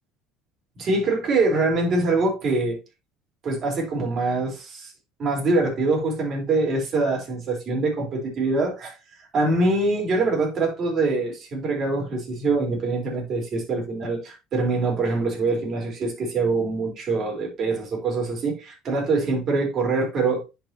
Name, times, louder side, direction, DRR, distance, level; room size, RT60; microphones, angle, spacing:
voice 1, 0.8-2.8 3.4-4.9 5.2-9.0 9.3-20.4, right 3 dB, 45° right, 4.3 m, -24 dB
10.5 x 5.1 x 3.0 m
supercardioid pair, 90°, 0 cm